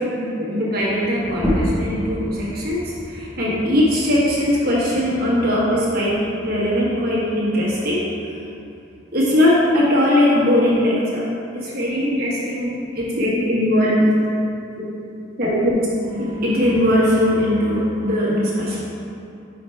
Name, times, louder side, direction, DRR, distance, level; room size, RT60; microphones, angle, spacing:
voice 1, 0.1-8.1 9.1-11.3 11.5-14.2 14.8-14.9 15.4-15.8 16.1-18.8, left 1 dB, 50° right, -6 dB, 1.4 m, -20 dB
sound 1, 1.3-6.5, equal, 5° right, 0.8 m, -29 dB
4.9 x 4.6 x 4.5 m, 2.6 s
head